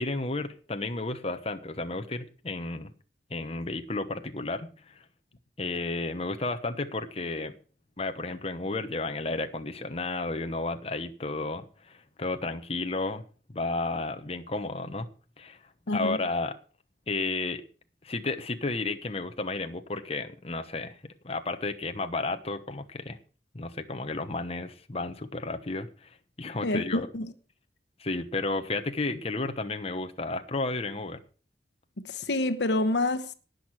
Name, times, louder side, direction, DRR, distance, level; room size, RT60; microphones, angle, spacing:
voice 1, 0.0-2.9 3.3-5.0 5.6-7.5 8.0-13.2 13.5-15.1 15.4-15.6 15.9-16.5 17.1-17.6 18.0-21.0 21.2-23.2 23.5-27.1 28.0-31.2, left 3 dB, 35° left, 1.0 m, -32 dB
voice 2, 15.9-16.2 26.6-27.3 32.0-33.3, left 2 dB, 80° left, 1.1 m, -28 dB
18.0 x 6.6 x 6.1 m
head